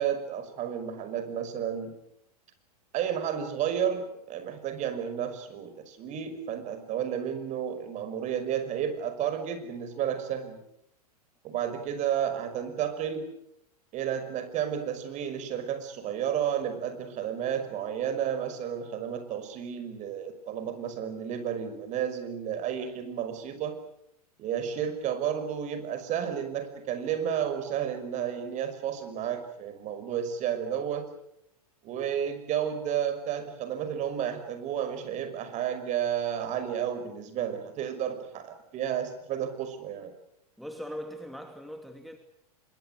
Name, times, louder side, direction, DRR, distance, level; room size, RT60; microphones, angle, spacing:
voice 1, 0.0-2.0 2.9-10.7 11.4-13.3 13.9-23.8 24.4-31.1 31.8-40.1, right 9 dB, 35° right, 5.5 m, -32 dB
voice 2, 40.6-42.2, equal, ahead, 2.6 m, -40 dB
25.5 x 23.0 x 8.1 m
hypercardioid pair, 105°, 20 cm